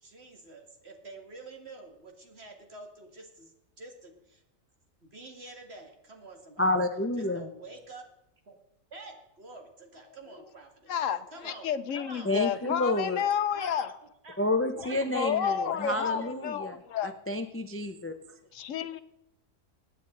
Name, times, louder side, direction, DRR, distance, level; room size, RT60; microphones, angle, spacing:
voice 1, 0.0-4.4 5.0-6.7 7.2-8.0 8.5-8.6 8.9-10.9 11.3-12.4 12.9-13.0 13.5-14.4 14.8-16.2 18.9-19.0, right 2 dB, 50° right, 2.3 m, -48 dB
voice 2, 6.6-7.4 12.2-13.2 14.4-18.1, left 2 dB, 15° left, 0.5 m, -29 dB
voice 3, 10.9-13.9 14.9-17.1 18.5-19.0, left 8 dB, 70° left, 1.1 m, -31 dB
24.0 x 9.3 x 3.9 m
omnidirectional pair, 1.4 m